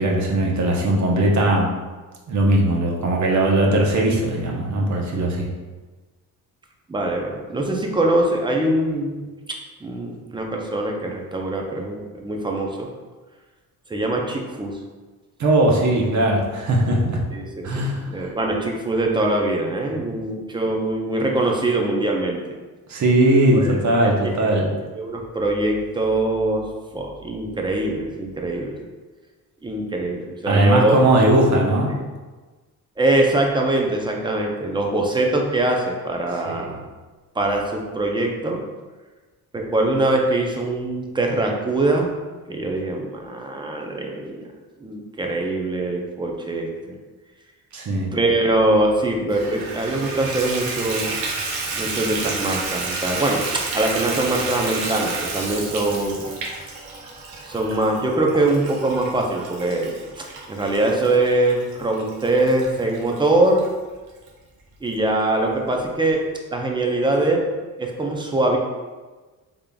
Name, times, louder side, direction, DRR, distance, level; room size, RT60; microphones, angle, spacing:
voice 1, 0.0-1.7 2.3-5.5 15.4-17.2 17.6-18.3 19.9-20.2 22.9-24.7 30.5-32.0 36.5-36.8 47.7-48.1, right 1 dB, 50° right, -1 dB, 0.8 m, -19 dB
voice 2, 6.9-9.6 9.8-12.9 13.9-14.8 17.3-22.4 23.5-23.8 24.0-24.1 24.4-24.7 24.9-26.6 26.9-28.8 29.6-31.0 31.9-32.0 33.0-36.7 37.4-38.6 39.5-42.1 42.5-44.5 44.8-47.0 48.1-51.2 51.8-56.3 57.5-59.9 60.2-63.6 64.8-66.2 66.5-67.4 67.8-68.6, right 2 dB, 15° right, 1 dB, 0.5 m, -23 dB
Water tap faucet / Bathtub (filling or washing), 49.3-63.7 64.3-64.4 64.9-65.0 65.2-65.3, right 3 dB, 80° right, 0.8 m, -31 dB
3.6 x 3.5 x 2.3 m, 1.3 s
cardioid pair, 100°, 35 cm